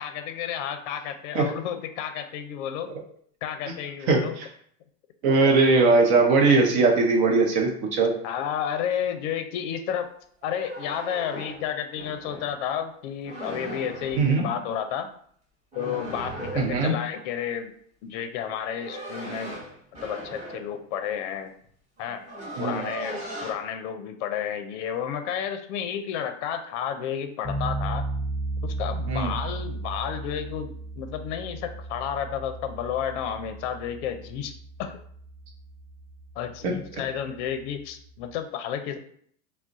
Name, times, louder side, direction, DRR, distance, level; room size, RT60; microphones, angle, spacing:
voice 1, 0.0-2.9 3.4-4.3 8.2-10.1 10.4-15.1 15.8-17.7 18.0-19.6 20.0-21.5 22.0-22.2 22.6-28.0 28.6-34.5 34.8-35.0 36.4-39.0, left 8 dB, 60° left, 8 dB, 0.5 m, -31 dB
voice 2, 4.1-4.4 5.2-8.2 14.1-14.5 16.6-17.0 22.6-22.8 29.1-29.3 36.6-36.8, right 3 dB, 55° right, 1 dB, 0.8 m, -20 dB
sound 1, 10.4-12.6 13.2-14.3 15.7-16.9 18.4-20.7 21.6-21.7 22.0-23.5, right 1 dB, 15° right, 0.9 m, -38 dB
sound 2, 27.4-38.3, right 2 dB, ahead, 0.5 m, -35 dB
2.3 x 2.1 x 3.8 m, 0.62 s
hypercardioid pair, 115°, 42 cm